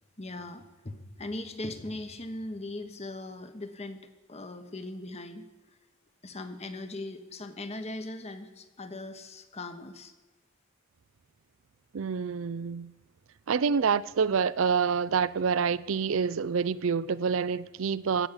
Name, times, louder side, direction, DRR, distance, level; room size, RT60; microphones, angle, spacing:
voice 1, 0.2-4.0 4.3-5.5 6.2-10.1, left 2 dB, 30° left, 1.2 m, -39 dB
voice 2, 11.9-12.9 13.5-18.3, right 6 dB, 70° right, 0.5 m, -27 dB
15.0 x 7.1 x 9.8 m
head